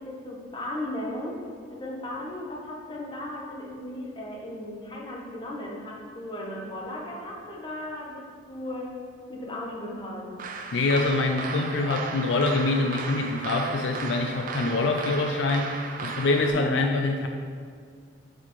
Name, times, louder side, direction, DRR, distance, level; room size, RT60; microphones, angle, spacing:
voice 1, 0.0-1.4 1.7-9.0 9.3-10.3 16.5-16.9, left 1 dB, 25° left, -2 dB, 0.9 m, -36 dB
sound 1, 10.4-16.5, right 4 dB, 45° right, 0.5 m, -35 dB
voice 2, 10.7-17.3, left 3 dB, 70° left, 4 dB, 0.4 m, -25 dB
6.3 x 6.0 x 3.1 m, 2.1 s
head